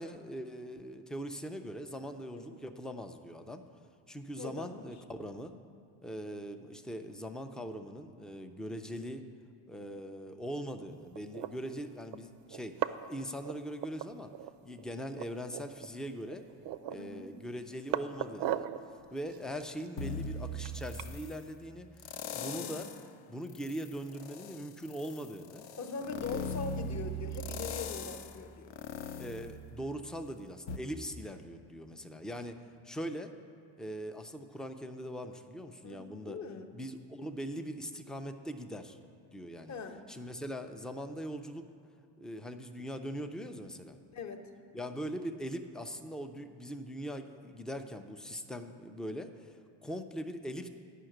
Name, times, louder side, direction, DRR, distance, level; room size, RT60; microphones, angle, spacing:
voice 1, 0.0-3.6 4.1-5.5 6.0-9.3 9.7-12.8 13.1-14.3 14.6-16.5 16.9-18.7 19.1-22.9 23.3-25.7 26.3-26.5 29.2-32.6 32.8-33.3 33.8-36.4 36.7-39.0 39.3-39.7 40.1-41.7 42.2-44.0 44.7-50.7, equal, ahead, 7 dB, 0.4 m, -41 dB
voice 2, 4.4-4.9 16.9-17.3 22.4-22.9 25.8-28.8 35.8-36.7 39.7-40.0 44.1-44.5, left 4 dB, 35° left, 6 dB, 0.9 m, -42 dB
sound 1, 11.1-11.5 12.1-12.2 12.5-13.1 13.4-14.5 14.8-14.9 15.1-15.9 16.3-17.1 17.5-18.8 19.3-21.1, right 12 dB, 65° right, 0.6 m, -37 dB
sound 2, 20.0-21.4 22.0-23.1 23.5-30.2 30.7-30.8, left 2 dB, 80° left, 0.7 m, -40 dB
10.0 x 5.7 x 7.8 m, 2.3 s
cardioid pair, 105°, 47 cm